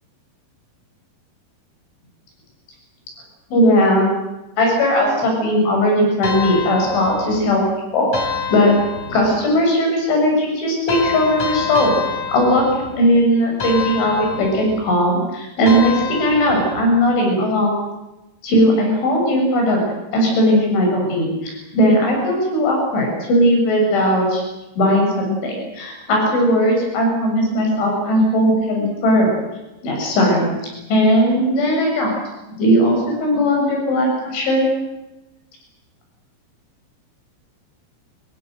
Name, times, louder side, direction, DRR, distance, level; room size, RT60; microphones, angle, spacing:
voice 1, 3.5-4.1 4.6-7.6 7.9-8.7 9.1-12.0 12.3-12.7 13.0-17.7 18.4-19.8 20.1-24.4 24.8-29.3 29.8-30.5 30.9-32.1 32.6-34.7, equal, 90° left, 1 dB, 9.4 m, -17 dB
sound 1, 6.2-7.5 8.1-9.4 10.9-13.1 13.6-14.9 15.7-17.0, left 5 dB, 45° left, 4.6 m, -27 dB
25.5 x 23.0 x 7.9 m, 0.97 s
omnidirectional pair, 5.3 m